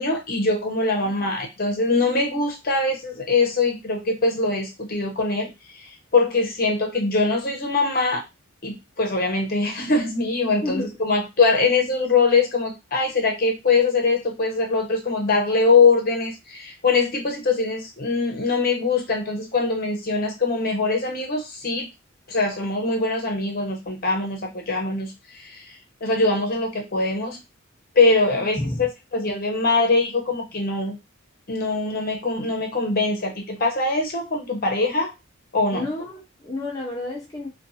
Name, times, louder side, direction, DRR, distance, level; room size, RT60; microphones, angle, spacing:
voice 1, 0.0-8.2 8.6-21.9 22.3-25.7 26.0-27.4 27.9-28.9 29.1-31.0 31.5-35.1 35.5-35.9, left 3 dB, 45° left, 0.8 m, -22 dB
voice 2, 10.6-11.0 28.3-28.9 35.7-37.5, left 2 dB, 15° left, 0.5 m, -30 dB
2.5 x 2.3 x 2.7 m
head